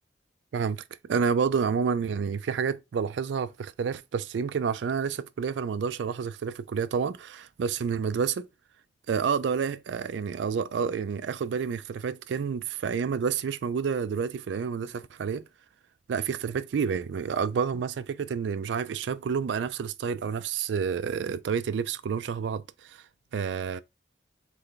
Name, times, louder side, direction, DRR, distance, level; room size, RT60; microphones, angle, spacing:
voice 1, 0.5-0.8 1.1-8.5 9.1-15.5 16.1-23.0 23.3-23.8, right 6 dB, 80° right, 0.4 m, -29 dB
3.3 x 3.2 x 3.8 m
head